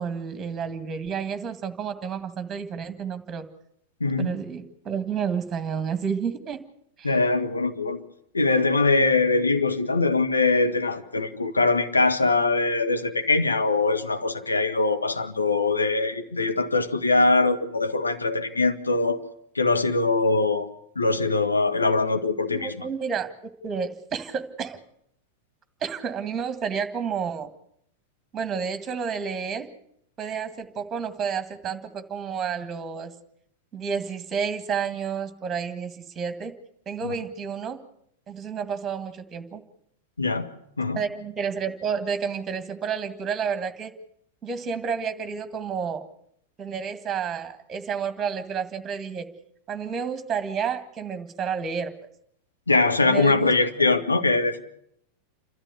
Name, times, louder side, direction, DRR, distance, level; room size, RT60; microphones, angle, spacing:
voice 1, 0.0-3.5 4.2-6.6 7.0-7.1 22.5-23.3 23.6-24.8 25.8-27.5 28.3-29.7 30.2-33.1 33.7-36.5 36.9-37.8 38.3-39.6 40.9-43.9 44.4-46.0 46.6-49.3 49.7-52.1 53.1-53.5, right 6 dB, 20° right, 1.9 m, -30 dB
voice 2, 4.0-4.4 7.0-8.0 8.3-19.2 19.5-20.7 20.9-22.8 37.0-37.1 40.2-40.5 40.8-41.0 52.7-54.6, left 3 dB, 80° left, 1.4 m, -22 dB
29.0 x 13.0 x 8.3 m
figure-of-eight pair, 90°, 0 cm